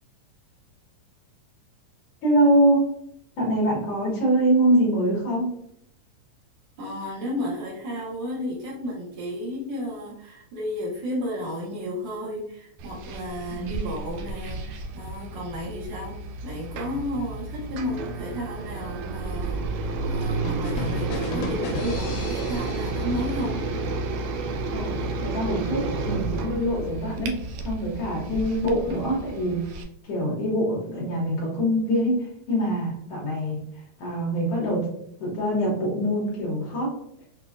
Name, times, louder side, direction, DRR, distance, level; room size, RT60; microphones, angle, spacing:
voice 1, 2.2-3.0 3.4-5.5 13.5-13.8 24.7-27.4 27.6-29.7 30.0-33.6 34.0-34.9 35.2-37.0, right 1 dB, 60° left, -4 dB, 1.7 m, -24 dB
voice 2, 6.8-23.6, equal, 70° right, -6 dB, 1.3 m, -33 dB
sound 1, 12.8-29.8, right 3 dB, 90° right, 1.5 m, -31 dB
sound 2, 20.4-24.2, left 3 dB, 80° left, 2.0 m, -35 dB
5.8 x 2.3 x 2.5 m, 0.70 s
omnidirectional pair, 3.7 m